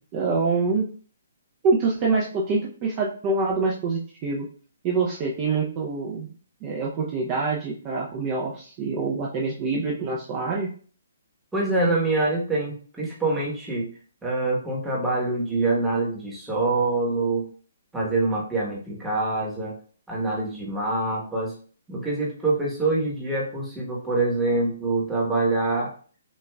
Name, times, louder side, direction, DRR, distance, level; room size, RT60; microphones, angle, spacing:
voice 1, 0.1-0.9 1.6-4.5 4.8-6.3 6.6-10.7, right 4 dB, 25° right, -2 dB, 0.6 m, -25 dB
voice 2, 11.5-13.9 14.2-17.5 17.9-19.8 20.1-21.5 21.9-25.9, right 2 dB, 5° right, -5 dB, 1.1 m, -25 dB
6.2 x 2.5 x 2.3 m, 0.42 s
hypercardioid pair, 160°, 0 cm